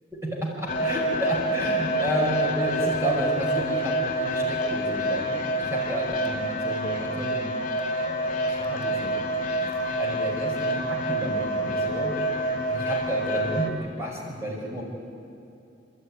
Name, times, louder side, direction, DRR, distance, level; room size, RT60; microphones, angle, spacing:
voice 1, 0.1-7.5 8.0-9.2 9.6-9.7 10.0-12.1 12.7-14.8, equal, 15° right, -2 dB, 5.1 m, -31 dB
sound 1, 0.7-13.7, right 1 dB, 40° left, 2.4 m, -27 dB
28.0 x 13.5 x 9.6 m, 2.6 s
head